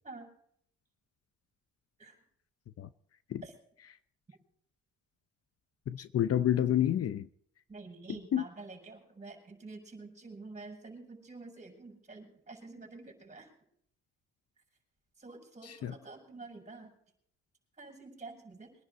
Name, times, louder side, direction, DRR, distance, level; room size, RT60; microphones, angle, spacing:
voice 1, 5.9-7.3 8.3-8.4 15.6-15.9, left 11 dB, 55° left, 0.8 m, -29 dB
voice 2, 7.7-13.5 15.2-16.9 17.8-18.7, right 3 dB, 25° right, 6.0 m, -48 dB
23.0 x 10.5 x 4.2 m
cardioid pair, 90°, 30 cm